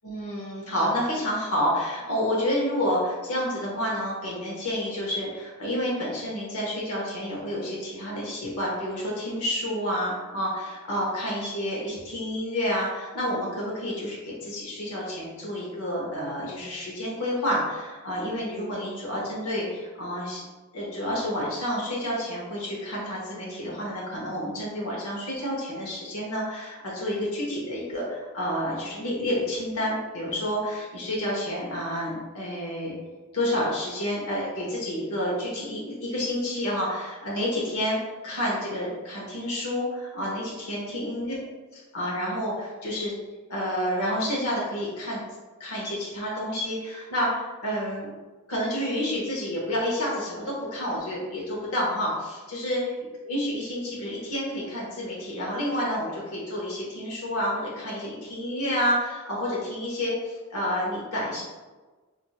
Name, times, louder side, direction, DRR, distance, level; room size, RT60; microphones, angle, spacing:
voice 1, 0.0-20.4 20.7-32.9 33.3-41.3 41.7-43.1 43.5-45.2 45.6-48.1 48.5-52.9 53.2-61.4, equal, 85° left, -4 dB, 0.9 m, -29 dB
4.2 x 2.5 x 2.4 m, 1.3 s
head